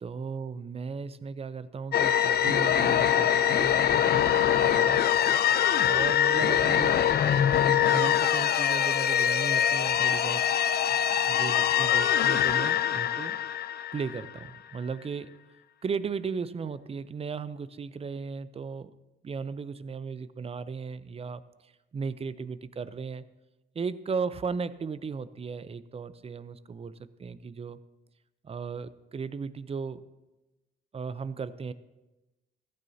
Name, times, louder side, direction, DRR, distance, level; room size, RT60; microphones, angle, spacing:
voice 1, 0.0-5.0 5.8-7.1 7.9-10.4 11.3-13.4 13.9-15.3 15.8-18.9 19.2-21.4 21.9-23.2 23.7-26.9 27.2-27.8 28.4-30.0 30.9-31.7, right 5 dB, 30° right, 15 dB, 0.6 m, -36 dB
sound 1, 1.9-14.4, left 10 dB, 55° left, 0.6 m, -24 dB
15.0 x 13.5 x 2.8 m, 1.1 s
cardioid pair, 90°, 20 cm